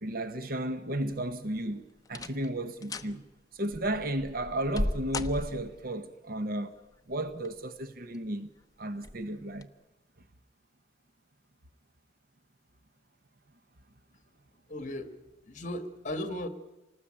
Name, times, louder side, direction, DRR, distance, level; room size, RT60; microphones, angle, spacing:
voice 1, 0.0-3.2 3.5-6.7 7.1-8.5 8.8-9.7, right 1 dB, 55° right, 1.0 m, -33 dB
sound 1, 1.1-1.6 2.1-2.5 2.8-3.1 3.7-5.9 7.1-7.7 8.1-8.2 9.0-9.2 9.6-9.7, left 1 dB, 20° left, 0.8 m, -36 dB
voice 2, 14.7-15.1 15.5-16.5, left 1 dB, 45° left, 1.9 m, -36 dB
27.0 x 19.5 x 8.8 m
head